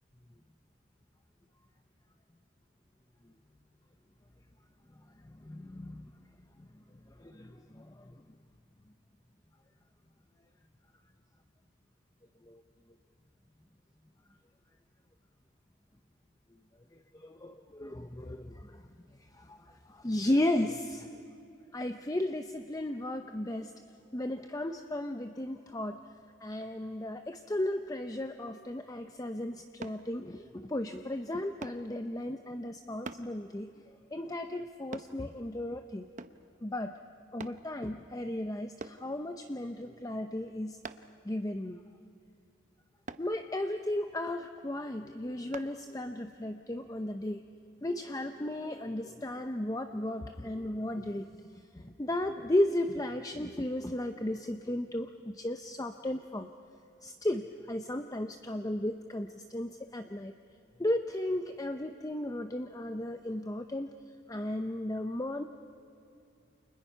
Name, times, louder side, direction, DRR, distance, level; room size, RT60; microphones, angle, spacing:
voice 1, 5.2-6.1 6.6-6.7 7.2-8.2 12.5-12.6 17.2-18.8 19.2-21.1 21.7-23.7 24.1-26.0 26.4-33.7 34.1-36.1 36.6-37.0 37.3-40.8 41.2-41.8 43.2-47.4 47.8-51.3 51.7-56.5 57.0-60.3 60.8-63.9 64.3-65.4, left 1 dB, 15° left, 7 dB, 0.6 m, -35 dB
sound 1, 29.8-30.0 31.6-31.8 33.0-33.3 34.9-35.1 36.2-36.5 37.4-37.6 38.8-39.0 40.8-41.2 43.1-43.3 45.5-45.7 46.3-46.4, right 3 dB, 35° right, 0.7 m, -43 dB
29.5 x 28.0 x 5.6 m, 2.7 s
head